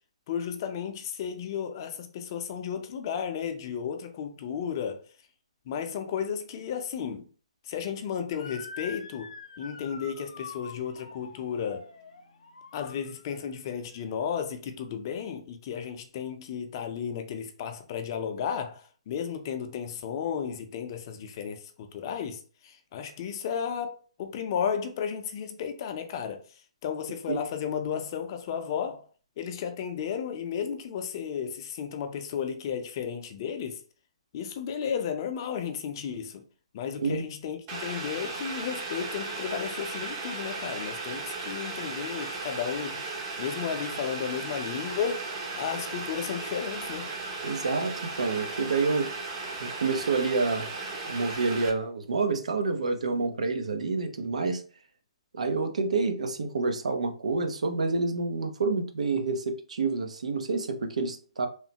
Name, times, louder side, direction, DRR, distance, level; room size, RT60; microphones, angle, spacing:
voice 1, 0.3-5.0 5.7-7.3 7.6-9.3 9.6-11.9 12.7-29.0 29.4-33.8 34.3-36.4 36.7-43.0 43.4-45.2 45.6-47.1, left 7 dB, 40° left, 0.5 m, -33 dB
Motor vehicle (road) / Siren, 8.3-13.6, left 4 dB, 85° left, 0.6 m, -45 dB
Boiling, 37.7-51.7, right 3 dB, 30° right, 0.6 m, -36 dB
voice 2, 47.4-49.1 49.6-50.7 51.1-54.6 55.3-61.5, right 4 dB, 80° right, 0.5 m, -28 dB
3.1 x 2.0 x 2.8 m
hypercardioid pair, 155°, 3 cm